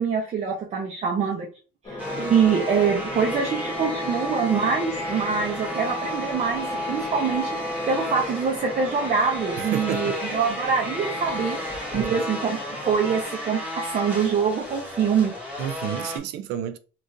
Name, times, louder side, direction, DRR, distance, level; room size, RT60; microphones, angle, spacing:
voice 1, 0.0-1.5 1.8-11.6 11.9-12.6 12.8-15.3, right 6 dB, 45° right, 0.7 m, -24 dB
sound 1, 1.8-13.2, left 2 dB, 25° left, 1.4 m, -37 dB
sound 2, 2.0-16.2, left 1 dB, 10° right, 1.2 m, -32 dB
voice 2, 9.6-10.1 11.9-12.2 15.6-16.8, right 10 dB, 80° right, 0.4 m, -30 dB
3.6 x 2.5 x 2.6 m
cardioid pair, 110°, 17 cm